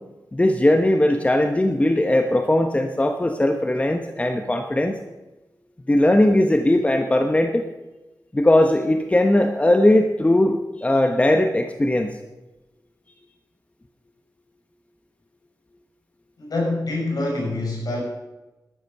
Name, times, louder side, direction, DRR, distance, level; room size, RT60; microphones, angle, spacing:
voice 1, 0.3-4.9 5.9-7.7 8.3-12.2, left 1 dB, 20° left, 5 dB, 1.1 m, -19 dB
voice 2, 16.4-18.0, left 2 dB, 65° left, -1 dB, 5.8 m, -25 dB
12.5 x 12.5 x 5.5 m, 1.1 s
wide cardioid pair, 95°, 7 cm